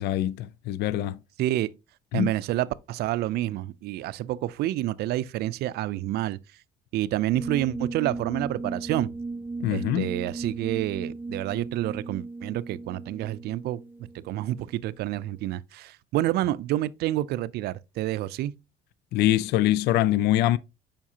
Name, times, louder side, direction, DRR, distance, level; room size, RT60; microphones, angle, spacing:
voice 1, 0.0-1.2 2.1-2.3 9.6-10.1 19.1-20.6, left 13 dB, 75° left, 0.4 m, -24 dB
voice 2, 1.4-1.7 2.1-6.4 6.9-9.1 9.7-13.8 14.1-18.5, right 14 dB, 70° right, 0.4 m, -28 dB
sound 1, 7.3-14.8, right 3 dB, 10° right, 0.5 m, -36 dB
7.3 x 5.1 x 2.8 m
cardioid pair, 110°, 17 cm